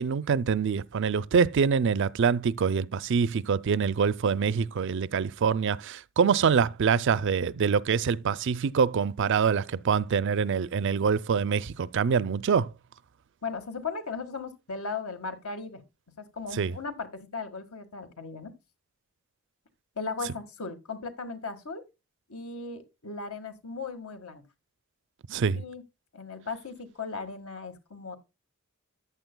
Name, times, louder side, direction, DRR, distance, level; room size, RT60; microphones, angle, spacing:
voice 1, 0.0-12.7 16.5-16.7 25.3-25.6, right 6 dB, 60° right, 0.4 m, -25 dB
voice 2, 13.4-15.8 16.2-18.5 20.0-21.8 22.3-24.4 25.5-25.8 26.1-28.2, left 4 dB, 80° left, 1.7 m, -37 dB
14.0 x 9.3 x 2.2 m
head